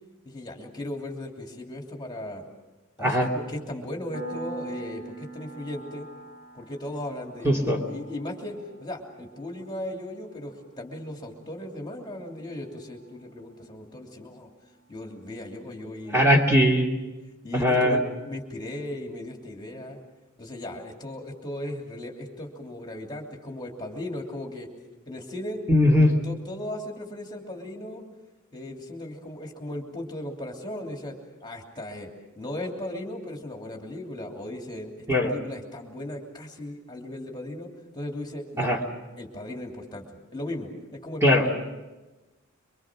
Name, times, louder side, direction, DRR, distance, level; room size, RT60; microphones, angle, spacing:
voice 1, 0.2-2.4 3.0-6.1 6.5-8.5 8.8-14.5 14.9-16.2 17.4-20.0 20.4-24.7 25.1-25.6 26.0-28.0 28.5-31.2 31.4-32.1 32.3-34.9 35.2-38.8 39.2-40.0 40.3-41.5, left 1 dB, 20° left, 1 dB, 3.0 m, -37 dB
Piano, 4.1-14.5, right 2 dB, 85° right, 7.4 m, -45 dB
voice 2, 7.4-7.8 16.1-16.9 17.5-18.0 25.7-26.1 35.1-35.3 38.6-38.8 41.2-41.4, left 1 dB, 15° right, -1 dB, 2.8 m, -20 dB
25.5 x 24.5 x 6.3 m, 1.1 s
head